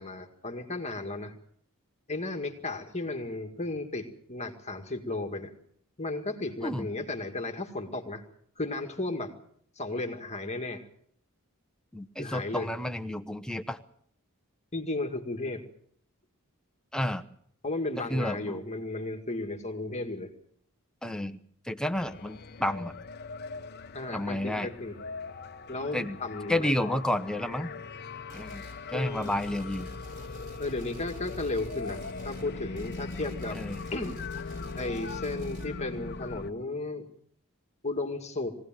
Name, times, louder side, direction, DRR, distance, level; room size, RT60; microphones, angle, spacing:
voice 1, 0.0-1.4 2.1-5.5 6.0-8.2 8.6-9.3 9.8-10.8 12.2-12.7 14.7-15.6 17.6-20.3 23.9-24.9 25.7-27.0 28.9-29.4 30.6-33.6 33.9-37.1 37.8-38.6, left 2 dB, 30° left, 4 dB, 2.0 m, -34 dB
voice 2, 11.9-13.8 16.9-17.2 18.0-18.6 21.0-21.4 21.6-22.9 24.1-24.7 25.9-26.2 26.5-27.7 28.3-28.6 28.9-29.9 33.5-33.8, left 1 dB, 5° left, 9 dB, 0.9 m, -31 dB
sound 1, 21.9-36.5, left 4 dB, 50° left, 0.9 m, -41 dB
sound 2, 28.3-28.8 29.2-35.7, left 2 dB, 35° right, 4.1 m, -47 dB
23.0 x 17.0 x 7.5 m, 0.66 s
head